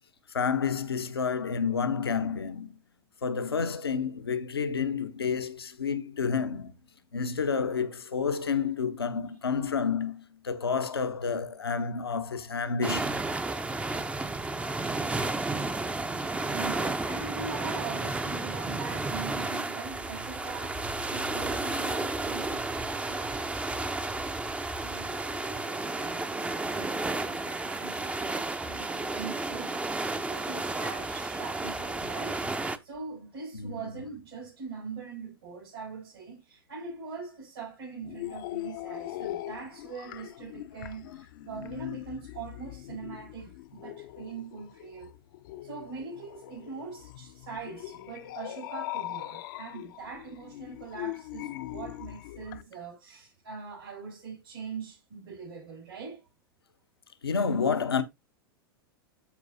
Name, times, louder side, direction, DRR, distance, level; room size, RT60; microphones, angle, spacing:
voice 1, 0.3-2.8 3.2-6.7 7.1-13.2 33.5-33.9 57.2-58.0, left 5 dB, 85° left, 1.0 m, -29 dB
sound 1, 12.8-32.8, right 2 dB, 10° right, 0.7 m, -32 dB
voice 2, 16.2-24.4 24.8-29.8 30.2-32.4 32.8-45.1 45.6-56.2, right 5 dB, 75° right, 6.0 m, -42 dB
sound 2, 38.0-52.6, left 16 dB, 60° left, 0.7 m, -41 dB
13.0 x 4.7 x 2.7 m
figure-of-eight pair, 90°, 12 cm